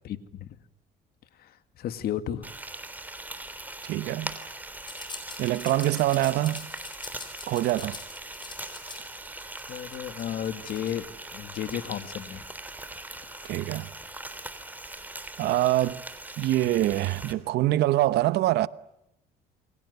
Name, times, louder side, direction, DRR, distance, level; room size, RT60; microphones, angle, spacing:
voice 1, 0.0-0.6 1.3-2.5 9.7-12.5 13.3-13.7, left 10 dB, 65° left, 2.0 m, -34 dB
Frying (food), 2.4-17.3, right 2 dB, 10° right, 3.2 m, -41 dB
voice 2, 3.8-4.3 5.4-6.7 7.5-8.0 13.5-13.9 15.4-16.0 16.4-18.7, right 15 dB, 75° right, 1.0 m, -24 dB
sound 1, 4.9-11.0, left 4 dB, 25° left, 7.0 m, -43 dB
28.5 x 23.0 x 8.1 m
cardioid pair, 110°, 17 cm